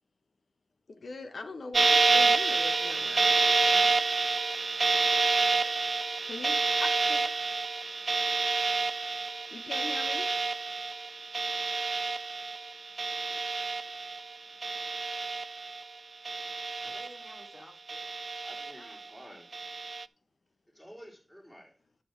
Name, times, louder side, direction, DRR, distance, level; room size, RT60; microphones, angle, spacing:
voice 1, 0.9-3.9 5.6-5.7 6.3-6.5 6.8-7.3 8.6-8.7 9.5-10.3 13.3-13.4, left 3 dB, 90° left, 1.1 m, -42 dB
sound 1, 1.7-14.3 14.6-15.8 16.2-17.5 17.9-18.9 19.5-20.0, right 4 dB, 70° right, 0.3 m, -28 dB
voice 2, 3.4-4.1 4.4-4.9 5.1-5.3 6.2-6.7 14.5-15.2 16.3-18.1 18.8-19.0, left 1 dB, 45° left, 3.1 m, -57 dB
voice 3, 18.4-19.5 20.7-21.7, equal, 15° left, 3.8 m, -50 dB
11.0 x 6.2 x 4.6 m
wide cardioid pair, 75°, 0 cm